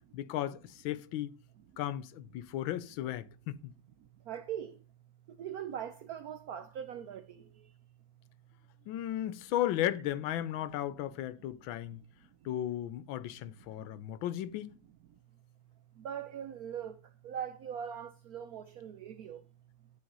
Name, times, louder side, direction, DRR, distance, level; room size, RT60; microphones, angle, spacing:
voice 1, 0.1-1.3 1.8-3.7 8.9-12.0 12.4-14.7, left 12 dB, 80° left, 1.4 m, -35 dB
voice 2, 4.3-4.7 5.4-7.2 16.0-16.9 17.2-19.4, right 9 dB, 70° right, 0.9 m, -40 dB
10.0 x 5.7 x 5.4 m
omnidirectional pair, 2.2 m